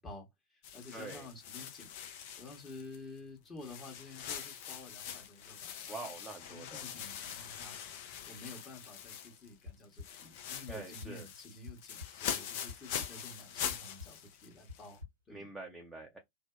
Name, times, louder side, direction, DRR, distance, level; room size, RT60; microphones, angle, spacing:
voice 1, 0.0-1.9 2.4-6.1 6.4-7.8 8.2-15.0 15.3-15.5, left 2 dB, 20° left, 1.0 m, -51 dB
sound 1, 0.6-3.2 3.6-9.6 9.8-15.0, left 9 dB, 50° left, 0.5 m, -43 dB
voice 2, 0.9-1.3 5.9-6.8 10.7-11.3 15.3-16.2, right 3 dB, 5° right, 0.6 m, -45 dB
sound 2, 9.7-10.1 10.7-11.1 11.5-12.1 12.7-13.1 13.7-14.1 14.7-15.1, left 4 dB, 90° right, 1.0 m, -45 dB
2.6 x 2.0 x 2.3 m
figure-of-eight pair, 90°, 0 cm